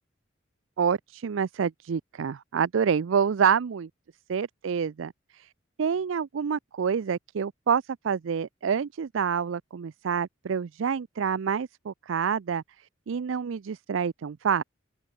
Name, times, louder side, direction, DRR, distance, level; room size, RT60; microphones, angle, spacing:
voice 1, 0.8-3.9 4.3-5.5 5.8-12.6 13.1-14.6, right 7 dB, 80° right, 0.4 m, -27 dB
open air
head